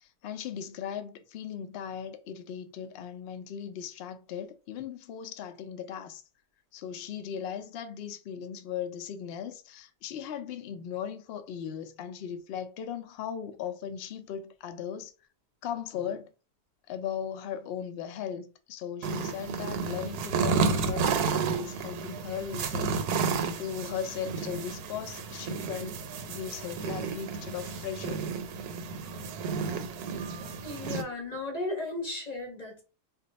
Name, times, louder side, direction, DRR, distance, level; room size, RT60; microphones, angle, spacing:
voice 1, 0.0-6.2 6.7-15.1 15.6-16.3 16.9-23.1 23.6-28.2, left 8 dB, 85° left, 0.5 m, -38 dB
sound 1, 19.0-31.0, right 5 dB, 90° right, 1.1 m, -32 dB
voice 2, 30.6-32.8, left 2 dB, 40° left, 0.6 m, -35 dB
2.4 x 2.3 x 3.9 m
omnidirectional pair, 1.6 m